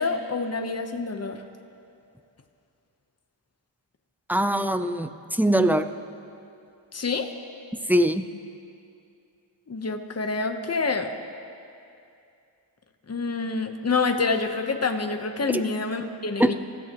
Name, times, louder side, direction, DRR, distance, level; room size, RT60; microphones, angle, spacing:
voice 1, 0.0-1.4 6.9-7.3 9.7-11.1 13.1-16.5, left 4 dB, 35° left, 5 dB, 1.0 m, -27 dB
voice 2, 4.3-5.9 7.9-8.3 15.5-15.6 16.4-16.5, right 1 dB, 5° right, 9 dB, 0.6 m, -22 dB
28.0 x 15.0 x 3.0 m, 2.5 s
wide cardioid pair, 85°, 46 cm